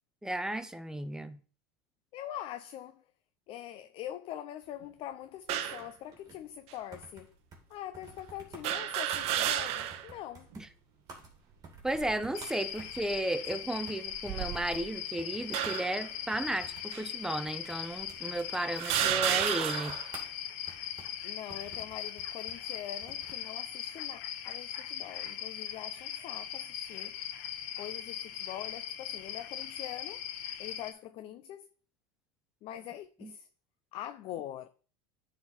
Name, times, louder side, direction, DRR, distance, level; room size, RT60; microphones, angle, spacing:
voice 1, 0.2-1.4 10.6-10.7 11.8-20.0 33.2-33.3, right 1 dB, 5° right, 0.6 m, -34 dB
voice 2, 2.1-3.0 3.5-7.3 7.7-10.5 21.2-27.2 27.8-30.2 30.6-31.7 32.6-33.5 33.9-34.7, left 11 dB, 45° left, 0.5 m, -43 dB
sound 1, 5.5-5.9 6.7-6.8 8.6-10.1 10.5-10.6 11.8-12.2 12.9-13.2 14.1-14.9 15.5-16.0 16.9-17.0 17.9-18.0 18.8-20.1, right 11 dB, 50° right, 0.8 m, -32 dB
sound 2, 5.6-23.5, right 3 dB, 30° right, 2.5 m, -54 dB
sound 3, 12.3-30.9, left 10 dB, 65° left, 1.0 m, -40 dB
9.4 x 4.1 x 4.4 m
supercardioid pair, 125°, 13 cm